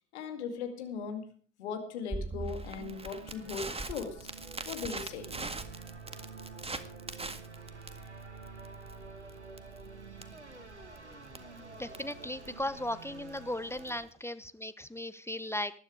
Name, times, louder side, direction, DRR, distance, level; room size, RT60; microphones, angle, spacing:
voice 1, 0.1-1.3 1.6-4.3 4.7-5.3, left 6 dB, 75° left, 6 dB, 2.2 m, -38 dB
Crackle, 2.1-14.1, right 3 dB, 15° right, 1.9 m, -42 dB
sound 1, 2.7-14.0, right 4 dB, 90° right, 1.2 m, -49 dB
voice 2, 11.8-15.7, left 1 dB, 5° left, 13 dB, 1.0 m, -37 dB
20.0 x 10.0 x 4.9 m, 0.42 s
figure-of-eight pair, 45°, 34 cm